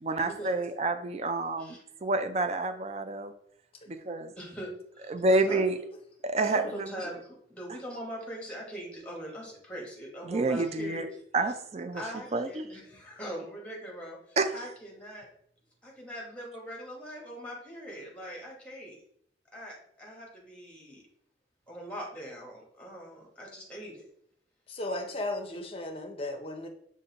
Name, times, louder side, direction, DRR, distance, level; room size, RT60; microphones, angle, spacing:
voice 1, 0.0-3.3 3.9-4.3 5.1-5.8 6.2-6.9 10.3-11.1 11.3-12.0 12.3-12.7 14.4-14.5, right 2 dB, 35° right, 8 dB, 0.4 m, -28 dB
voice 2, 4.4-5.6 6.4-11.2 11.9-15.3 15.8-19.0 19.5-21.0 21.7-24.1, equal, 5° left, -2 dB, 1.2 m, -42 dB
voice 3, 24.7-26.7, left 1 dB, 30° left, 5 dB, 0.6 m, -35 dB
5.2 x 2.5 x 3.9 m, 0.70 s
head